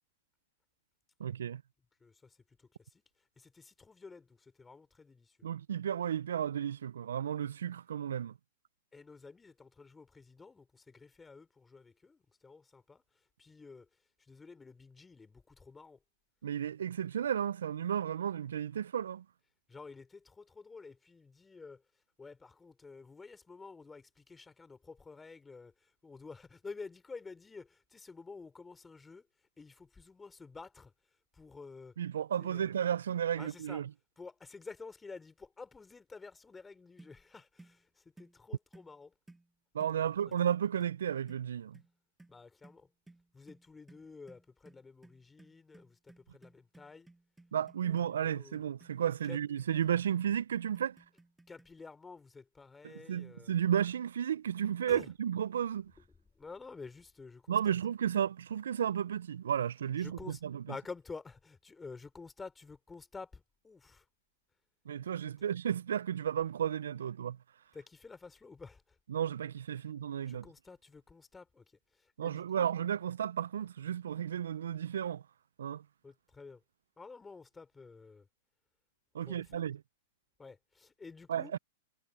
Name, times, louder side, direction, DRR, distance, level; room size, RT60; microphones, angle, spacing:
voice 1, 1.2-1.6 5.4-8.3 16.4-19.2 32.0-33.9 39.7-41.8 47.5-51.0 52.8-55.9 57.5-60.6 64.9-67.4 69.1-70.5 72.2-75.2 75.6-75.8 79.1-79.8 81.3-81.6, right 9 dB, 75° right, 0.4 m, -33 dB
voice 2, 2.0-2.4 2.9-3.0 3.4-5.4 8.9-13.0 13.4-13.9 14.3-16.0 19.7-21.8 22.2-25.7 26.0-29.3 29.6-30.9 31.3-31.9 32.4-32.7 33.4-33.8 34.2-39.1 40.2-40.3 42.3-42.9 43.3-47.1 47.8-48.6 49.3-49.4 51.5-53.5 54.9-55.1 56.4-57.8 60.0-60.4 60.7-64.1 65.4-65.5 67.7-69.0 70.3-71.6 72.2-72.7 76.0-76.6 77.0-78.3 79.3-79.7 80.4-81.5, left 4 dB, 10° left, 3.7 m, -50 dB
sound 1, 37.0-37.2 37.6-37.8 38.2-38.4 38.7-38.9 39.3-39.5 39.8-40.0 40.3-40.5 40.8-41.0 41.3-41.5 41.7-41.9 42.2-51.8, right 2 dB, 5° right, 7.1 m, -59 dB
hypercardioid pair, 115°, 0 cm